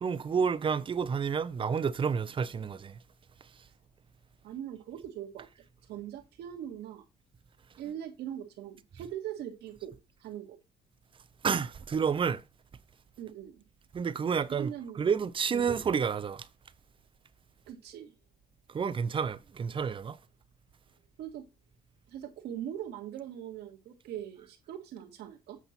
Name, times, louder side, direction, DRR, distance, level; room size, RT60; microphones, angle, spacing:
voice 1, 0.0-2.9 11.4-12.4 13.9-14.7 15.0-16.5 18.7-20.2, right 6 dB, 30° right, 0.6 m, -29 dB
voice 2, 4.4-5.5 5.9-7.0 7.8-9.9 10.2-10.6 13.2-13.6 14.5-15.0 15.5-15.7 17.7-18.1 21.2-21.4 22.1-25.6, right 10 dB, 75° right, 1.7 m, -41 dB
8.2 x 5.5 x 4.3 m
cardioid pair, 110°, 17 cm